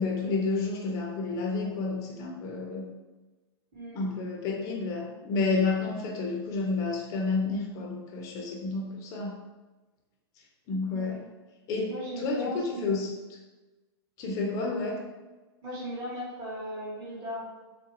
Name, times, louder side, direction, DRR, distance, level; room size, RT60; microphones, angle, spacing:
voice 1, 0.0-2.9 3.9-9.4 10.7-11.2 11.7-13.1 14.2-15.0, left 3 dB, 25° left, 0 dB, 0.5 m, -30 dB
voice 2, 3.7-4.2 10.9-11.2 11.9-12.9 15.6-17.5, equal, 25° right, -10 dB, 1.0 m, -37 dB
3.4 x 2.5 x 2.9 m, 1.2 s
supercardioid pair, 160°, 14 cm